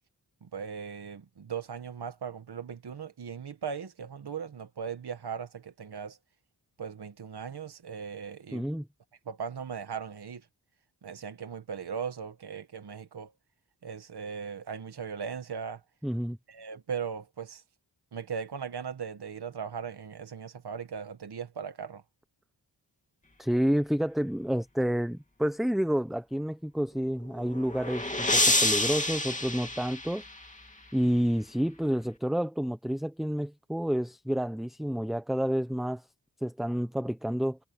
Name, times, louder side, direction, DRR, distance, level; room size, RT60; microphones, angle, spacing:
voice 1, 0.4-6.2 6.8-8.7 9.3-10.5 11.0-13.3 13.8-15.8 16.5-17.6 18.1-22.0, right 7 dB, 65° right, 1.4 m, -38 dB
voice 2, 8.5-8.9 16.0-16.4 23.4-30.2 30.9-36.0 36.4-37.6, equal, ahead, 0.9 m, -29 dB
sound 1, 27.2-30.6, left 1 dB, 20° left, 2.8 m, -28 dB
wide cardioid pair, 85°, 42 cm